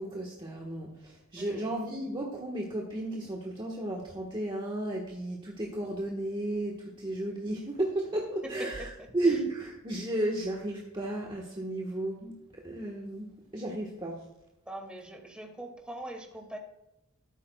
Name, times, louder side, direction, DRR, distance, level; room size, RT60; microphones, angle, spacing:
voice 1, 0.0-14.2, right 1 dB, 25° right, -2 dB, 1.3 m, -33 dB
voice 2, 1.3-1.7 8.4-8.7 9.0-9.4 14.7-16.6, right 1 dB, 5° right, 2 dB, 2.1 m, -42 dB
13.0 x 12.5 x 2.3 m, 0.89 s
head